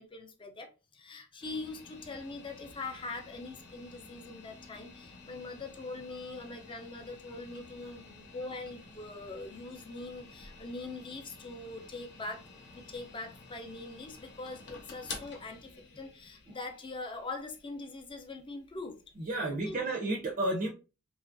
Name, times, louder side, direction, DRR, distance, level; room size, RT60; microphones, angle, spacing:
voice 1, 0.0-12.4 12.7-15.7 16.0-19.0 19.5-19.8, left 3 dB, 25° left, 0.5 m, -42 dB
sound 1, 1.4-19.5, left 3 dB, 55° left, 0.8 m, -51 dB
voice 2, 19.3-20.7, right 2 dB, 40° right, 0.5 m, -31 dB
2.8 x 2.4 x 2.5 m
head